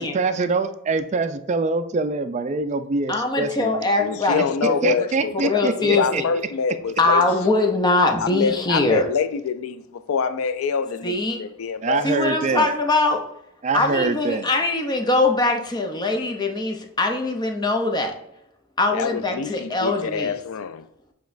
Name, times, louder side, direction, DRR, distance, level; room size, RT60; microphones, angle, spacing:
voice 1, 0.0-3.8 4.6-6.2 11.8-12.7 13.6-14.5, right 3 dB, 35° right, 0.3 m, -24 dB
voice 2, 3.1-5.1 5.4-6.3 7.0-9.1 11.0-11.4 12.0-13.3 13.7-18.1 18.8-20.3, left 2 dB, 20° left, 0.6 m, -22 dB
voice 3, 4.0-7.2 8.2-12.1 18.9-20.9, left 6 dB, 70° left, 0.4 m, -26 dB
6.8 x 3.1 x 2.5 m
head